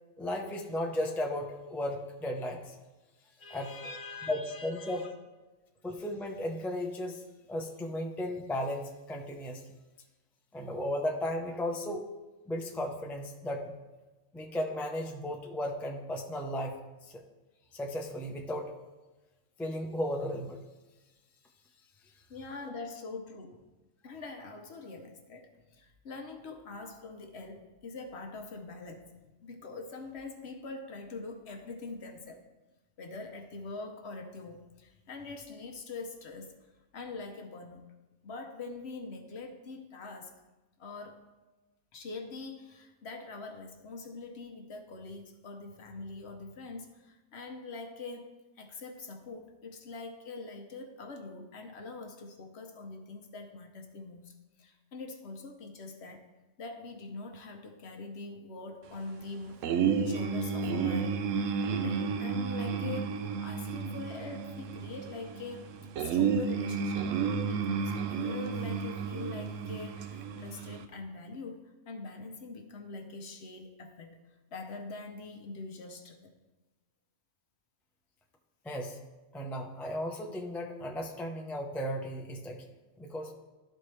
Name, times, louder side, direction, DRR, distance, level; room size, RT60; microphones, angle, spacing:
voice 1, 0.2-2.8 3.5-5.0 5.8-7.2 7.5-9.7 10.5-12.1 12.5-13.7 14.3-17.2 17.7-18.7 19.6-20.6 78.6-79.0 79.3-82.6 83.0-83.3, left 1 dB, ahead, 1 dB, 0.4 m, -35 dB
voice 2, 3.4-5.1 22.3-23.6 24.0-29.1 29.4-32.5 33.0-36.5 36.9-37.8 38.2-40.3 40.8-41.2 41.9-56.3 56.6-59.6 60.0-65.7 66.0-67.1 67.5-71.6 71.9-74.2 74.5-76.3, left 3 dB, 55° left, 4 dB, 1.0 m, -44 dB
sound 1, 59.6-70.9, right 6 dB, 70° right, 0.9 m, -32 dB
12.5 x 4.4 x 3.2 m, 1.1 s
omnidirectional pair, 1.4 m